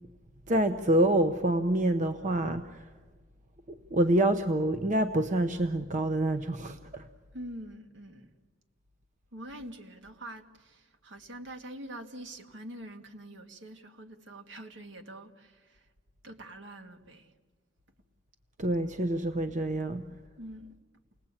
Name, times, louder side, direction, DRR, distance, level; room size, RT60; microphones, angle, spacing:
voice 1, 0.5-2.8 3.9-7.0 18.6-20.0, right 1 dB, 40° right, 10 dB, 0.7 m, -27 dB
voice 2, 7.3-8.3 9.3-15.8 16.2-17.3 20.4-20.7, right 1 dB, 70° right, 6 dB, 1.9 m, -45 dB
28.5 x 19.5 x 8.8 m, 1.4 s
head